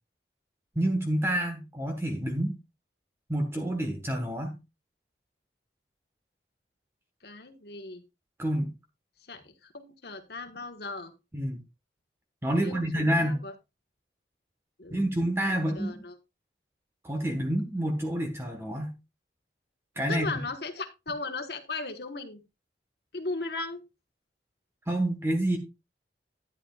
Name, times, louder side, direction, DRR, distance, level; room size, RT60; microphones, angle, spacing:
voice 1, 0.7-2.5 3.3-4.6 8.4-8.7 11.3-11.6 12.4-13.4 14.9-16.0 17.0-18.9 20.0-20.3 24.9-25.6, right 1 dB, 15° right, 4 dB, 1.2 m, -28 dB
voice 2, 7.2-8.0 9.3-11.1 12.6-13.5 14.8-15.1 15.4-16.1 20.1-22.4 23.1-23.8, left 3 dB, 60° left, 7 dB, 1.3 m, -37 dB
11.0 x 10.5 x 2.3 m, 0.24 s
head